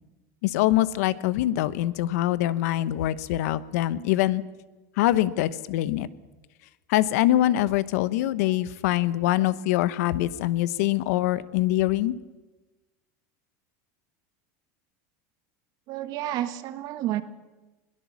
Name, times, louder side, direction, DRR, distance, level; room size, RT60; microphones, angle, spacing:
voice 1, 0.4-4.4 5.0-6.1 6.9-12.1, left 14 dB, 75° left, 16 dB, 0.9 m, -24 dB
voice 2, 15.9-17.2, right 13 dB, 50° right, 12 dB, 1.3 m, -30 dB
21.5 x 17.5 x 7.2 m, 1.2 s
supercardioid pair, 135°, 8 cm